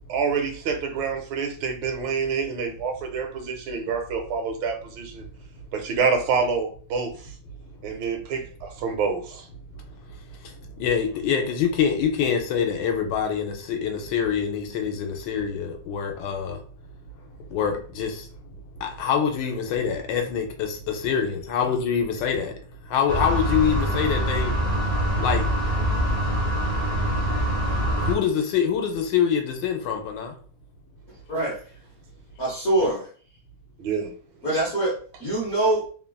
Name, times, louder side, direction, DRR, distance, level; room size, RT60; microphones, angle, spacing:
voice 1, 0.1-5.3 5.7-7.3 7.8-9.5 33.8-34.1, right 5 dB, 80° right, 1.3 m, -27 dB
voice 2, 9.8-16.6 17.5-18.3 18.7-24.6 25.2-25.5 28.0-30.3, left 7 dB, 75° left, 1.2 m, -25 dB
sound 1, 23.1-28.2, equal, 55° right, 0.5 m, -24 dB
voice 3, 32.4-33.1 34.4-34.9 35.2-35.9, right 2 dB, 55° left, 0.8 m, -23 dB
3.1 x 2.3 x 2.2 m
omnidirectional pair, 2.1 m